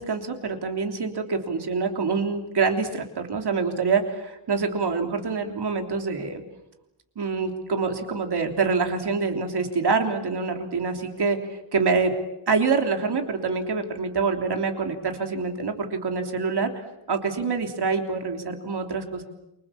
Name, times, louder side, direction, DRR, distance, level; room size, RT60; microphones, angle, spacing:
voice 1, 0.0-6.4 7.1-11.4 11.7-12.1 12.5-16.7 17.1-19.2, right 4 dB, 50° right, 5 dB, 3.4 m, -26 dB
29.0 x 25.0 x 7.2 m, 0.92 s
wide cardioid pair, 170°, 49 cm